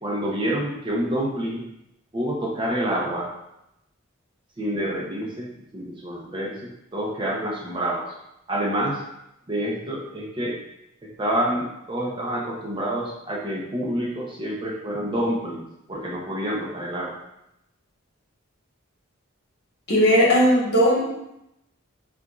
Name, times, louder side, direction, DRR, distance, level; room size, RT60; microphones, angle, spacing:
voice 1, 0.0-1.6 2.1-3.3 4.6-8.1 8.5-9.0 9.5-10.6 11.2-17.1, right 1 dB, 25° right, -3 dB, 0.6 m, -28 dB
voice 2, 19.9-21.0, equal, 50° left, -5 dB, 1.4 m, -17 dB
6.7 x 2.5 x 2.3 m, 0.84 s
head